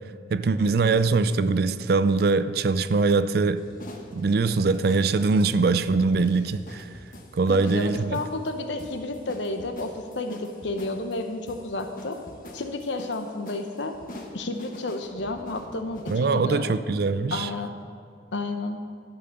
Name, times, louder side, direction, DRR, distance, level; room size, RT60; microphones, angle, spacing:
voice 1, 0.3-3.6 4.1-6.9 7.3-8.2 16.1-17.5, right 4 dB, 55° right, 0.4 m, -22 dB
sound 1, 3.6-16.3, left 1 dB, 45° left, 1.1 m, -45 dB
voice 2, 7.5-12.2 12.5-14.0 14.3-16.7 17.3-17.7 18.3-18.8, left 2 dB, 75° left, 0.9 m, -31 dB
12.0 x 5.6 x 6.7 m
head